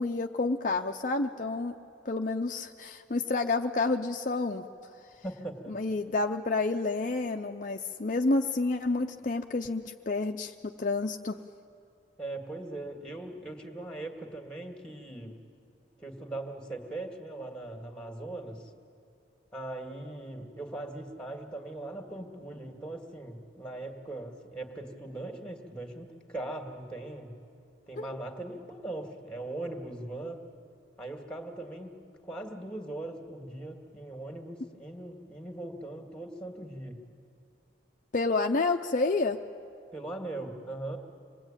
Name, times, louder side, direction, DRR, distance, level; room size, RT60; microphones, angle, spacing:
voice 1, 0.0-1.7 2.1-4.6 5.7-11.4 28.0-28.1 38.1-39.4, left 3 dB, 45° left, 4 dB, 0.6 m, -29 dB
voice 2, 5.2-5.8 12.2-15.4 16.0-18.6 19.5-27.4 27.9-30.4 31.0-32.0 32.2-37.0 39.9-41.0, right 2 dB, 5° left, 4 dB, 2.1 m, -40 dB
26.0 x 20.5 x 9.0 m, 2.5 s
head